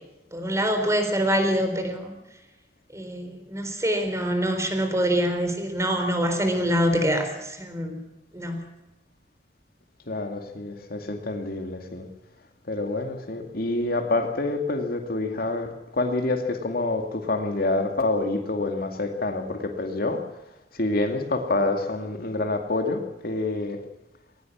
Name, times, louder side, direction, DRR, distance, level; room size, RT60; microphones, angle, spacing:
voice 1, 0.3-2.1 2.9-8.0 8.3-8.7, equal, 15° right, 6 dB, 4.0 m, -25 dB
voice 2, 10.1-12.1 12.7-20.2 20.7-23.8, left 2 dB, 55° left, 5 dB, 2.4 m, -27 dB
20.0 x 19.0 x 7.4 m, 0.98 s
head